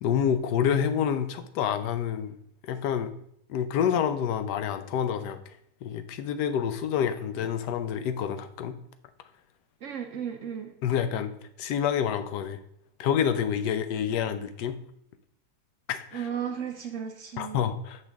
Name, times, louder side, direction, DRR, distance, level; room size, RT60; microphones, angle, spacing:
voice 1, 0.0-2.4 2.6-3.1 3.5-8.8 10.8-11.3 11.6-12.6 13.0-14.8 15.9-16.3 17.4-18.1, left 8 dB, 75° left, 10 dB, 1.2 m, -28 dB
voice 2, 9.8-10.7 16.1-17.7, right 8 dB, 60° right, 5 dB, 0.8 m, -35 dB
8.2 x 5.4 x 3.5 m, 0.73 s
omnidirectional pair, 1.9 m